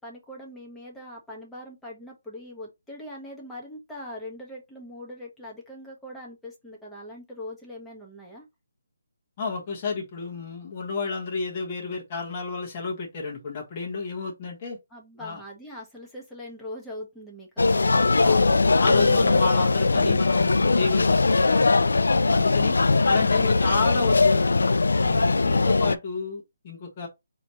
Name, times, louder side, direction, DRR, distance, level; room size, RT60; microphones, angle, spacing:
voice 1, 0.0-8.4 14.9-18.0 23.4-23.7, left 1 dB, 5° left, 1.1 m, -41 dB
voice 2, 9.4-14.8 15.1-15.4 18.2-18.4 18.8-21.6 22.3-22.8 23.0-24.7 25.0-27.1, left 4 dB, 30° left, 1.3 m, -31 dB
sound 1, 17.6-26.0, left 3 dB, 85° left, 0.3 m, -20 dB
4.2 x 3.0 x 2.9 m
hypercardioid pair, 165°, 0 cm